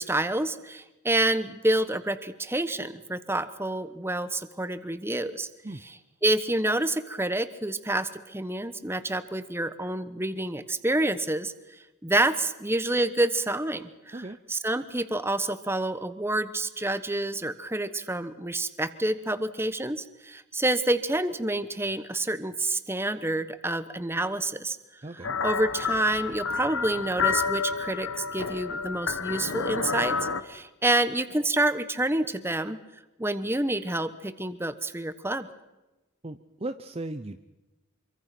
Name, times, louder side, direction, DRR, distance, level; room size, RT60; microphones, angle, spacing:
voice 1, 0.0-5.5 6.2-11.5 12.0-14.2 14.5-24.8 25.4-30.2 30.4-32.8 33.2-35.5, right 1 dB, 10° right, 12 dB, 1.1 m, -28 dB
voice 2, 25.0-25.3 36.2-37.5, right 2 dB, 25° right, 8 dB, 0.7 m, -37 dB
sound 1, 25.2-30.4, left 5 dB, 65° left, 1.4 m, -29 dB
25.5 x 24.0 x 6.0 m, 1.1 s
head